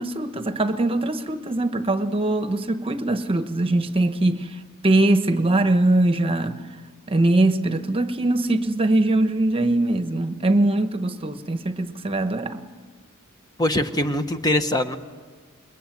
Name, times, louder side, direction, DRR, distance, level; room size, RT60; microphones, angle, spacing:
voice 1, 0.0-6.6 7.1-12.6, right 2 dB, 25° right, 1.1 m, -22 dB
voice 2, 13.6-15.0, left 1 dB, 20° left, 1.1 m, -22 dB
28.0 x 21.5 x 9.3 m
head